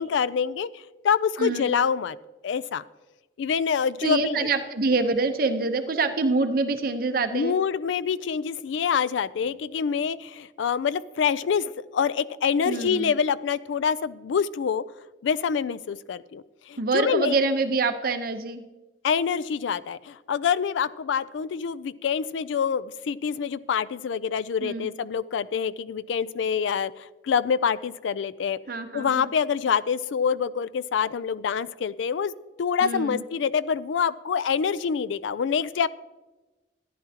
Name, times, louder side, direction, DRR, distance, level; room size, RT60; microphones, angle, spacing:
voice 1, 0.0-2.2 2.4-2.8 3.4-4.5 7.3-14.8 15.2-17.3 19.0-28.6 28.9-32.3 32.6-35.9, left 6 dB, 80° left, 18 dB, 0.3 m, -26 dB
voice 2, 1.4-1.7 4.0-7.6 12.6-13.1 16.8-18.6 24.6-24.9 28.7-29.3 32.8-33.2, right 3 dB, 50° right, 7 dB, 0.8 m, -25 dB
14.0 x 10.0 x 2.8 m, 1.1 s
head